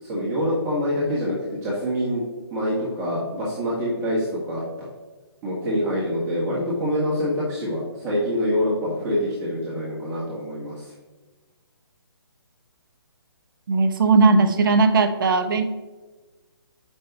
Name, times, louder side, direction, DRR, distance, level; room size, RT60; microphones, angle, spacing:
voice 1, 0.0-2.2 2.5-4.6 5.4-10.9, equal, 20° right, -7 dB, 1.5 m, -25 dB
voice 2, 13.7-15.7, right 3 dB, 55° right, 8 dB, 0.7 m, -18 dB
7.4 x 5.4 x 2.9 m, 1.3 s
figure-of-eight pair, 145°, 14 cm